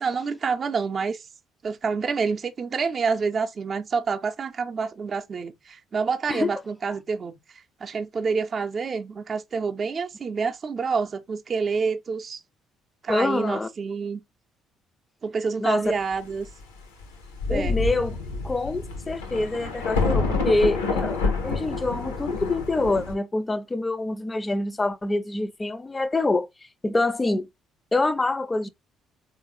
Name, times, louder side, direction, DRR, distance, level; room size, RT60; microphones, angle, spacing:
voice 1, 0.0-1.2 1.6-7.3 7.8-12.4 13.0-14.2 15.2-16.5 17.5-17.8, right 5 dB, 45° right, 0.5 m, -27 dB
voice 2, 13.1-13.7 15.6-15.9 17.5-18.2 18.4-26.5 26.8-27.5 27.9-28.7, left 2 dB, 25° left, 0.5 m, -26 dB
Thunder, 17.0-17.1 17.4-23.1, left 3 dB, 85° left, 0.7 m, -27 dB
3.5 x 2.5 x 2.9 m
hypercardioid pair, 50°, 0 cm